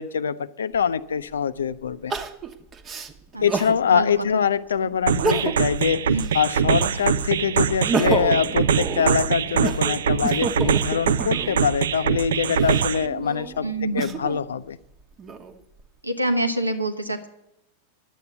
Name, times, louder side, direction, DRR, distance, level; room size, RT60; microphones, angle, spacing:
voice 1, 0.0-2.1 3.4-6.1 6.3-13.7 13.9-14.8, left 7 dB, 65° left, 15 dB, 0.5 m, -24 dB
Crying sobbing, 0.7-0.8 2.1-3.8 4.3-4.4 5.1-5.8 6.1-7.2 7.6-11.6 12.3-14.4 15.0-15.8, right 4 dB, 25° right, 1.0 m, -29 dB
voice 2, 3.3-4.4 6.1-6.2 7.0-7.1 13.6-14.2 16.0-17.3, right 1 dB, 85° right, 8 dB, 1.1 m, -27 dB
sound 1, 5.1-13.1, right 7 dB, 65° right, 0.4 m, -23 dB
10.5 x 8.2 x 9.1 m, 0.86 s
figure-of-eight pair, 90°, 0 cm